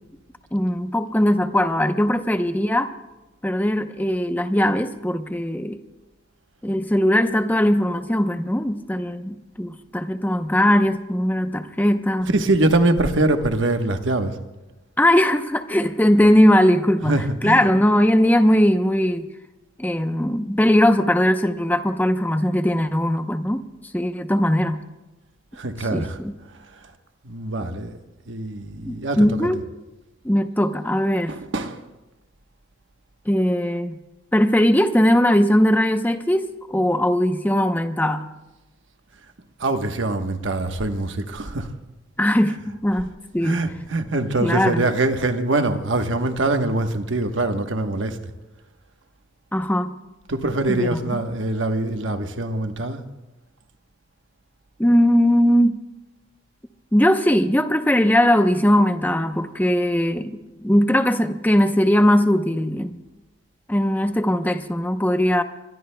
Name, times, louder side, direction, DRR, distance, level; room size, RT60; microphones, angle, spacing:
voice 1, 0.5-2.9 3.4-5.8 6.6-12.3 15.0-19.3 19.8-23.6 23.9-24.8 25.9-26.3 28.9-29.6 30.2-31.3 33.3-34.0 34.3-38.3 42.2-43.6 44.4-44.8 49.5-49.9 50.7-51.0 54.8-55.8 56.9-60.3 60.6-63.0 63.7-65.4, equal, 10° left, 0.7 m, -19 dB
voice 2, 12.3-14.4 17.0-17.7 25.5-26.2 27.2-28.0 28.3-29.6 31.3-31.8 39.6-41.7 43.4-48.2 50.3-53.0, right 2 dB, 75° right, 1.2 m, -23 dB
26.5 x 23.0 x 2.2 m
head